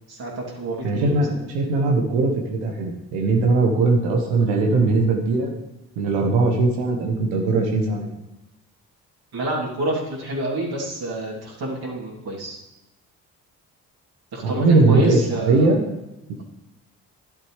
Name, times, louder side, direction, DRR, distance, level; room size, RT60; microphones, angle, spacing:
voice 1, 0.1-1.2 4.8-4.9 9.3-12.6 14.3-15.7, right 1 dB, 55° right, -4 dB, 3.1 m, -28 dB
voice 2, 0.8-5.5 6.0-8.1 14.4-15.8, right 3 dB, 80° right, 1 dB, 1.3 m, -20 dB
12.5 x 10.5 x 3.3 m, 0.98 s
hypercardioid pair, 40°, 46 cm